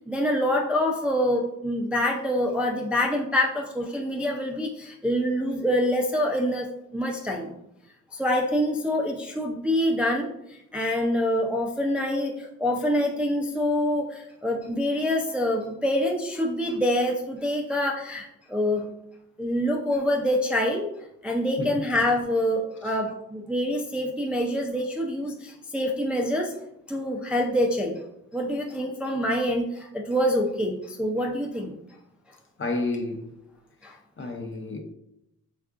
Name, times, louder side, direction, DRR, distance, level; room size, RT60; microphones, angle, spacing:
voice 1, 0.1-7.5 8.1-18.9 19.4-20.9 21.2-26.5 26.9-28.0 28.3-31.7 33.8-33.9, left 1 dB, 5° right, 0.4 m, -26 dB
voice 2, 32.6-33.3 34.2-34.8, left 2 dB, 35° left, 0.6 m, -30 dB
3.5 x 2.4 x 2.4 m
cardioid pair, 70°, 33 cm